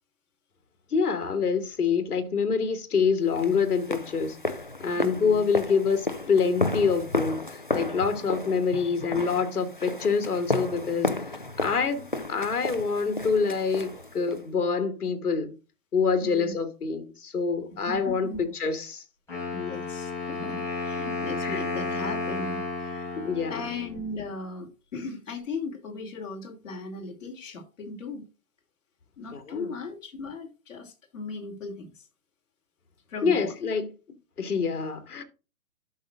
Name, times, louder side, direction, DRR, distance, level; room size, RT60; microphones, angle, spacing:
voice 1, 0.9-15.6 15.9-18.3 18.6-19.0 21.4-21.6 23.2-23.6 29.3-29.7 33.2-33.9 34.4-35.2, left 5 dB, 75° left, 2.4 m, -26 dB
sound 1, 3.3-14.4, left 2 dB, 35° left, 0.4 m, -33 dB
voice 2, 4.9-5.4 16.2-16.5 17.9-18.5 19.5-23.2 23.5-28.3 29.2-32.0 33.1-33.5, left 3 dB, 55° left, 3.1 m, -37 dB
Wind instrument woodwind instrument, 19.3-24.2, left 3 dB, 5° left, 5.0 m, -32 dB
12.0 x 6.3 x 2.5 m
hypercardioid pair, 170°, 45 cm